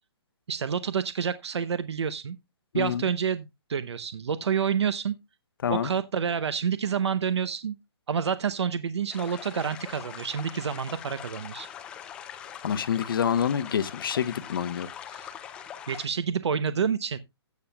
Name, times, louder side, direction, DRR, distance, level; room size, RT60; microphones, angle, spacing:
voice 1, 0.5-2.4 2.7-5.1 5.7-7.7 8.1-11.7 15.1-17.2, right 7 dB, 80° right, 0.7 m, -28 dB
sound 1, 9.1-16.1, left 9 dB, 5° left, 0.4 m, -42 dB
voice 2, 12.6-14.9, left 8 dB, 55° left, 0.8 m, -27 dB
16.0 x 7.0 x 2.2 m
hypercardioid pair, 165°, 14 cm